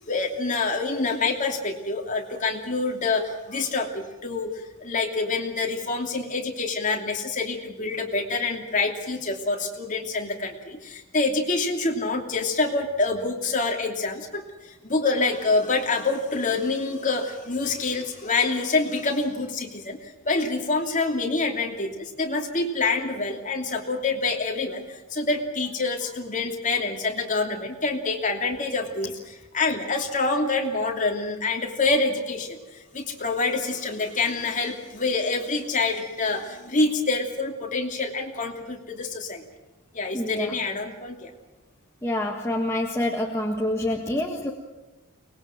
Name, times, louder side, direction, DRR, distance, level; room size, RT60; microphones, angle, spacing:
voice 1, 0.1-39.4 39.9-41.3, left 3 dB, 35° left, 2 dB, 2.9 m, -26 dB
voice 2, 40.1-40.6 42.0-44.5, left 1 dB, 10° left, 0 dB, 1.5 m, -27 dB
24.0 x 20.5 x 7.6 m, 1.1 s
head